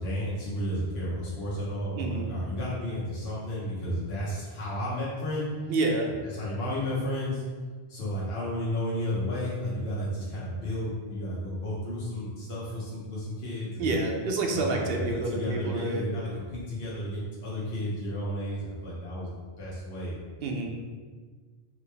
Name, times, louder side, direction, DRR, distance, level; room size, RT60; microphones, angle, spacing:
voice 1, 0.0-5.5 6.2-7.4 7.9-14.0 14.5-20.2, equal, 70° left, -7 dB, 1.1 m, -32 dB
voice 2, 2.0-2.3 5.7-6.1 13.8-16.0 20.4-20.7, right 2 dB, 65° right, 1 dB, 0.8 m, -28 dB
4.0 x 3.0 x 3.3 m, 1.5 s
omnidirectional pair, 1.1 m